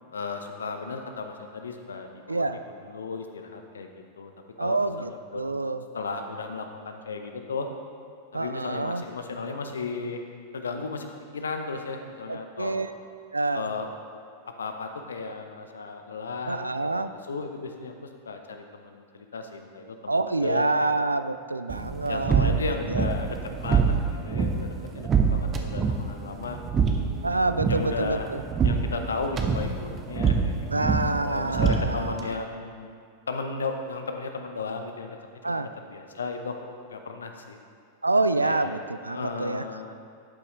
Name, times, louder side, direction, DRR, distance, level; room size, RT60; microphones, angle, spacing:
voice 1, 0.1-2.5 2.8-4.3 4.6-7.7 8.3-10.2 10.5-11.1 11.3-12.8 13.5-13.9 14.6-20.9 22.1-23.4 23.6-26.6 27.7-28.3 28.6-30.8 31.2-35.2 35.4-36.6 36.9-37.6 38.4-38.7 39.1-40.0, left 4 dB, 70° left, 5 dB, 0.8 m, -35 dB
voice 2, 2.3-2.6 4.6-5.8 8.3-9.0 12.3-12.9 13.3-13.7 16.5-17.1 20.1-22.5 22.9-23.0 27.2-28.4 30.7-32.4 35.4-35.7 38.0-39.6, right 2 dB, 80° right, 11 dB, 0.4 m, -27 dB
sound 1, 21.7-32.3, right 5 dB, 25° right, 0.9 m, -26 dB
11.5 x 8.6 x 3.2 m, 2.2 s
figure-of-eight pair, 90°, 0 cm